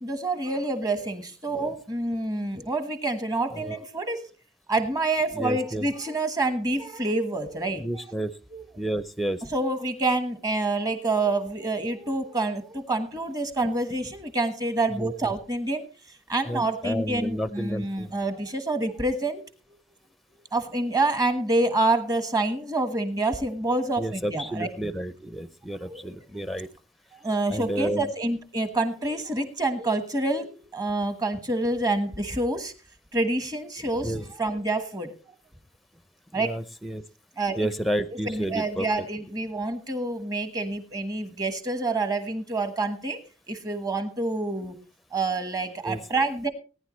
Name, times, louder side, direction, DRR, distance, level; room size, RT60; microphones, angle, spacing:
voice 1, 0.0-4.3 4.7-7.9 8.5-8.6 9.5-15.9 16.3-19.4 20.5-24.7 25.9-26.4 27.2-32.7 33.1-35.1 36.3-36.5 37.4-37.7 38.3-43.2 43.5-44.8 45.1-46.5, right 2 dB, 20° right, 9 dB, 1.3 m, -27 dB
voice 2, 5.3-5.9 7.8-8.3 8.8-9.4 15.0-15.1 16.5-18.1 24.0-26.7 27.5-28.1 34.0-34.3 36.3-37.0 37.6-39.1 45.8-46.0, right 1 dB, ahead, 13 dB, 0.6 m, -31 dB
19.0 x 10.0 x 3.1 m, 0.35 s
head